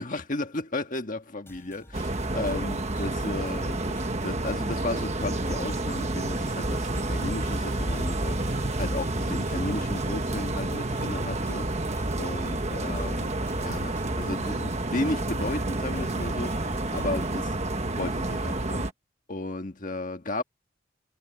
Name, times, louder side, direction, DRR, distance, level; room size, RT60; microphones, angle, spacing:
voice 1, 0.0-11.7 12.2-13.3 13.6-17.6 18.0-18.9 19.3-20.4, left 2 dB, 40° left, 1.6 m, -34 dB
sound 1, 1.5-17.5, left 1 dB, 10° left, 5.7 m, -50 dB
sound 2, 1.9-18.9, right 2 dB, 30° right, 1.4 m, -29 dB
head